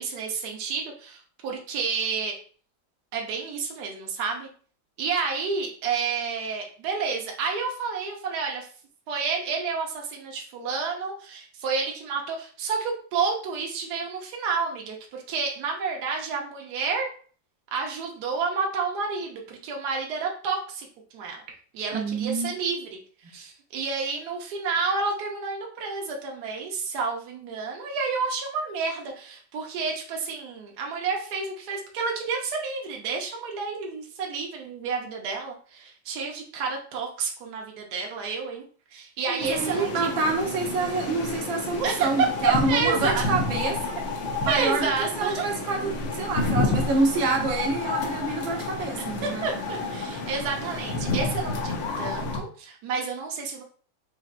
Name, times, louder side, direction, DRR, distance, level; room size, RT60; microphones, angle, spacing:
voice 1, 0.0-2.4 3.1-4.5 5.0-8.7 9.1-17.1 17.7-20.9 21.1-21.4 21.7-23.0 23.3-38.6 38.9-40.1 41.8-43.3 44.5-45.5 49.2-53.6, right 5 dB, 65° right, 0 dB, 1.4 m, -30 dB
voice 2, 21.9-22.5 39.3-44.0 44.4-49.5, right 3 dB, 90° right, 0 dB, 1.7 m, -27 dB
sound 1, 39.4-52.4, left 3 dB, 80° left, 1.5 m, -30 dB
5.6 x 3.2 x 2.4 m, 0.43 s
omnidirectional pair, 2.0 m